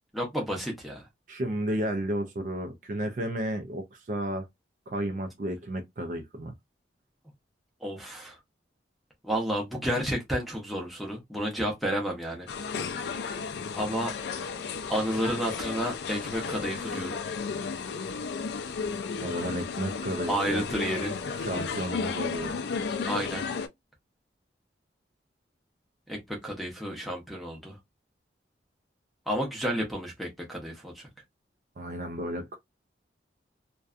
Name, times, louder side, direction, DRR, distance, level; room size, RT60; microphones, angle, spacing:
voice 1, 0.1-1.1 7.8-8.4 9.2-12.5 13.8-14.1 14.9-17.2 20.3-21.2 23.1-23.5 26.1-27.8 29.3-31.1, equal, ahead, 0.7 m, -31 dB
voice 2, 1.3-4.5 4.9-6.5 16.9-17.0 19.2-20.6 21.4-22.5 31.8-32.6, right 1 dB, 45° right, 0.4 m, -32 dB
sound 1, 12.5-23.7, left 5 dB, 65° left, 0.3 m, -33 dB
2.6 x 2.2 x 2.4 m
head